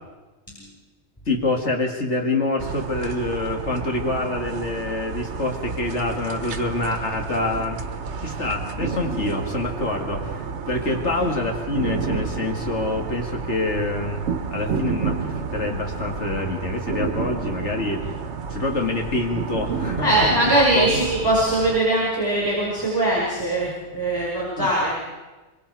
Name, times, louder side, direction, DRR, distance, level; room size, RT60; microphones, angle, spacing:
voice 1, 1.3-7.8 8.2-18.0 18.5-20.2 20.7-21.0 24.6-24.7, left 2 dB, 80° left, 2 dB, 2.4 m, -26 dB
sound 1, 2.6-21.8, right 5 dB, 80° right, 1.3 m, -30 dB
voice 2, 20.0-25.0, right 1 dB, 20° left, -5 dB, 5.4 m, -21 dB
25.5 x 23.5 x 4.7 m, 1.2 s
omnidirectional pair, 1.2 m